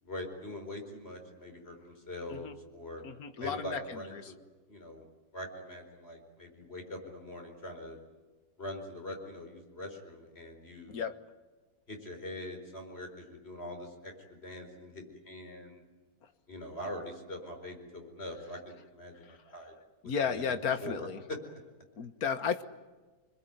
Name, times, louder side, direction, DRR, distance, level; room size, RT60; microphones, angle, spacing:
voice 1, 0.0-3.0 3.4-4.4 4.7-5.0 5.3-8.0 8.6-11.0 11.9-15.8 16.5-19.7 20.0-21.4, left 1 dB, 40° left, 4 dB, 4.8 m, -43 dB
voice 2, 3.0-4.3 10.9-11.2 19.2-19.4 20.0-21.2 22.0-22.6, left 6 dB, 75° left, 10 dB, 1.8 m, -34 dB
27.0 x 21.0 x 9.3 m, 1.3 s
omnidirectional pair, 1.6 m